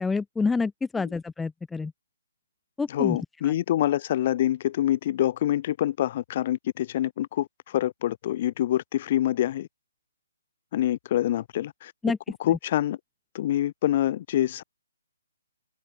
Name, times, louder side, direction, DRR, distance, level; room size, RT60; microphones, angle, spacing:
voice 1, 0.0-1.9 2.8-3.2 3.4-3.5 12.0-12.2, left 4 dB, 5° left, 0.7 m, -27 dB
voice 2, 2.9-9.7 10.7-11.9 12.4-13.0 13.3-14.6, left 12 dB, 40° left, 1.3 m, -26 dB
open air
hypercardioid pair, 155°, 0 cm